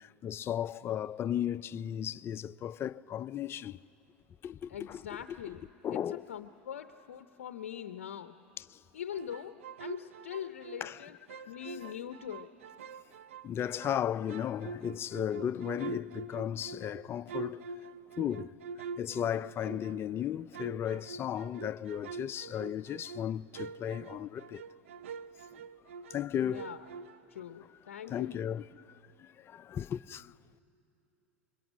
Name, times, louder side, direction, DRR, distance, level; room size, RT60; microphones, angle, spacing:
voice 1, 0.2-3.8 4.4-5.0 5.3-5.6 5.8-6.2 8.6-8.7 10.8-11.1 11.8-12.0 13.4-17.6 18.2-18.5 19.0-24.6 26.1-26.7 28.1-28.7 29.5-30.3, left 10 dB, 35° left, 0.4 m, -35 dB
voice 2, 4.7-5.7 5.9-8.3 8.9-11.2 11.5-12.5 26.4-26.9 27.3-28.4, left 9 dB, 90° left, 0.6 m, -42 dB
sound 1, 9.1-11.0 11.3-14.0 14.3-20.1 20.5-26.3 26.5-27.4, right 4 dB, 85° right, 0.5 m, -45 dB
26.5 x 23.0 x 6.3 m
hypercardioid pair, 90°, 7 cm